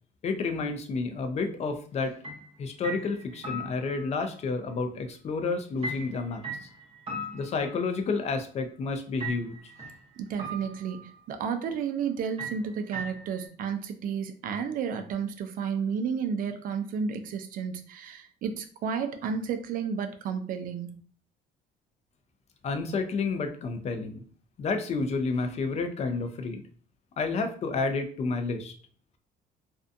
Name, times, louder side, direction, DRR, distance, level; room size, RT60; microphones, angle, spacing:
voice 1, 0.2-2.2 2.6-6.4 7.3-9.6 22.6-24.2 24.6-26.6 27.2-28.7, left 4 dB, 40° left, 6 dB, 0.5 m, -30 dB
sound 1, 2.2-2.5 2.8-4.2 5.8-8.1 9.2-10.0 10.4-11.2 12.4-13.5, right 1 dB, 35° right, 0.8 m, -38 dB
voice 2, 10.2-21.0, right 6 dB, 55° right, 7 dB, 0.4 m, -32 dB
2.6 x 2.2 x 2.5 m, 0.44 s
cardioid pair, 110°, 17 cm